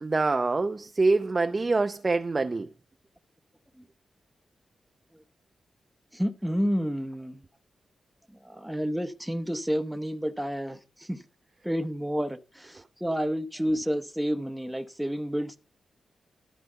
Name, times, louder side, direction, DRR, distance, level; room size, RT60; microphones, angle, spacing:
voice 1, 0.0-2.7, right 3 dB, 30° right, 0.6 m, -25 dB
voice 2, 6.1-7.4 8.4-11.2 11.6-15.6, equal, 5° right, 0.9 m, -30 dB
12.5 x 5.0 x 7.8 m
wide cardioid pair, 100°, 0 cm